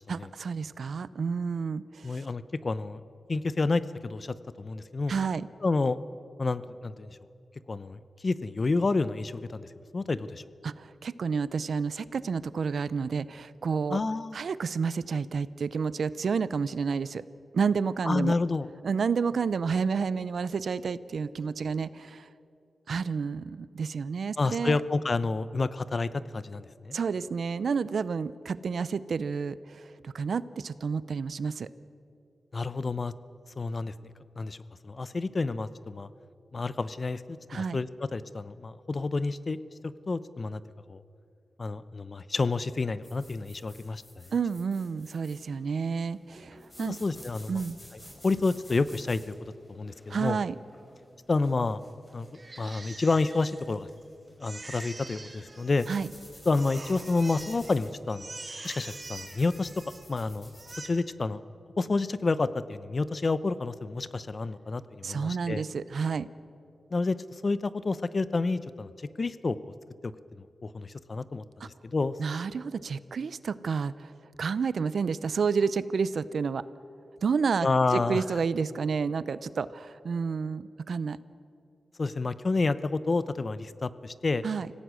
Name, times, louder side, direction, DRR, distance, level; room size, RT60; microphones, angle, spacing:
voice 1, 0.1-2.3 5.1-5.5 10.6-14.0 14.3-17.2 17.5-18.3 18.8-22.3 22.9-24.8 26.9-31.7 37.5-37.8 44.3-47.0 47.5-47.8 50.1-50.6 55.9-56.1 65.0-66.3 71.6-71.7 72.2-74.1 74.4-76.6 77.2-81.2 84.4-84.7, right 5 dB, 75° right, 17 dB, 0.6 m, -30 dB
voice 2, 2.0-3.0 3.3-5.1 5.6-6.0 6.4-7.2 7.7-9.7 9.9-10.4 13.9-14.4 18.0-18.7 24.4-27.0 32.5-33.1 33.6-33.9 34.4-34.6 34.8-36.1 36.5-39.6 39.8-40.6 40.9-41.0 41.6-44.2 46.8-47.6 48.2-49.3 49.7-50.4 51.3-51.8 52.1-52.3 52.6-53.9 54.4-55.9 56.5-58.3 58.6-59.7 60.1-60.5 60.8-61.4 61.8-65.6 66.9-68.9 69.2-69.6 70.0-70.1 70.4-72.1 77.6-78.2 82.0-84.4, left 3 dB, 45° left, 15 dB, 0.7 m, -29 dB
sound 1, 43.0-60.8, left 1 dB, 25° left, 5.5 m, -53 dB
Crying sobbing, 52.3-54.0 54.4-56.2 56.5-57.8 58.1-60.2 60.5-60.9, right 2 dB, 35° right, 2.5 m, -45 dB
25.5 x 17.0 x 6.3 m, 2.6 s
wide cardioid pair, 80°, 0 cm